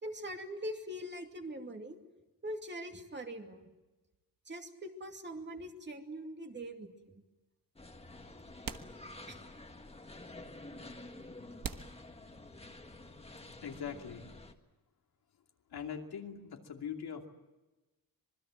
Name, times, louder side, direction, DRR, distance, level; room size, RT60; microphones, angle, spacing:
voice 1, 0.0-2.0 2.4-3.6 4.5-7.2 9.3-9.4, equal, 30° right, 3 dB, 2.5 m, -42 dB
sound 1, 6.8-6.9 8.0-8.1 8.6-9.6 9.9-10.0 10.7-10.8 11.6-12.8, right 7 dB, 65° right, 1.3 m, -45 dB
sound 2, 7.8-14.5, left 2 dB, 15° left, 1.7 m, -50 dB
voice 2, 13.6-14.3 15.7-17.3, left 7 dB, 85° left, 2 dB, 2.7 m, -42 dB
26.0 x 21.0 x 7.7 m, 1.1 s
wide cardioid pair, 140°, 37 cm